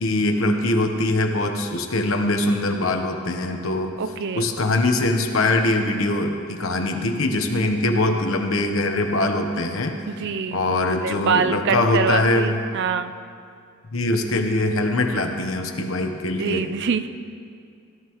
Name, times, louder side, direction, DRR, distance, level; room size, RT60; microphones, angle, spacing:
voice 1, 0.0-3.9 4.4-9.9 10.5-12.6 13.9-16.7, left 2 dB, 75° left, 4 dB, 1.1 m, -22 dB
voice 2, 4.0-4.5 10.1-13.1 16.4-17.1, right 5 dB, 55° right, 11 dB, 0.5 m, -25 dB
17.5 x 11.5 x 3.1 m, 2.3 s
head